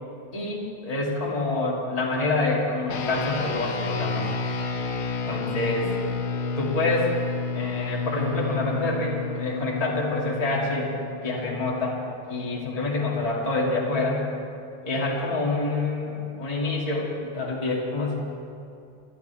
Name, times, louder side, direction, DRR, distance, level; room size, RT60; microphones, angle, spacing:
voice 1, 0.3-4.3 5.3-6.0 6.6-7.1 7.5-11.0 11.2-12.0 12.3-14.2 14.9-18.2, left 2 dB, 15° left, -4 dB, 2.1 m, -27 dB
sound 1, 2.9-12.5, left 4 dB, 65° left, 1.3 m, -31 dB
27.0 x 12.0 x 3.5 m, 2.5 s
omnidirectional pair, 3.4 m